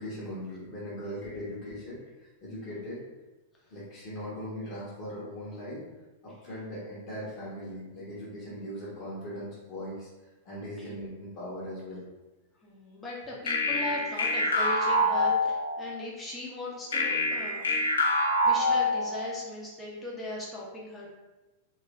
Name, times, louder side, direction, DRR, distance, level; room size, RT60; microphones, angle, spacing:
voice 1, 0.0-3.0 3.7-5.8 6.2-10.1 10.4-12.1, equal, 45° left, -8 dB, 1.1 m, -39 dB
voice 2, 12.6-17.8 18.1-21.1, left 1 dB, 15° left, -4 dB, 0.9 m, -39 dB
sound 1, 13.5-16.0 16.9-19.4, left 1 dB, 70° left, 0.5 m, -26 dB
3.1 x 2.4 x 3.1 m, 1.1 s
figure-of-eight pair, 95°, 0 cm